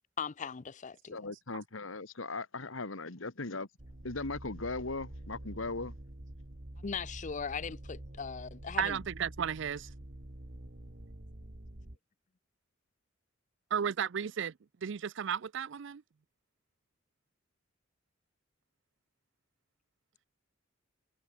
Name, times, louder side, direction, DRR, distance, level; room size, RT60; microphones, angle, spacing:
voice 1, 0.2-1.3 6.8-9.0, left 6 dB, 40° left, 0.5 m, -39 dB
voice 2, 1.1-3.7 4.0-6.0, left 3 dB, 85° left, 1.9 m, -38 dB
sound 1, 3.8-12.0, right 1 dB, 50° right, 1.9 m, -47 dB
voice 3, 8.8-9.9 13.7-14.5 14.8-16.0, right 8 dB, 65° right, 0.5 m, -33 dB
head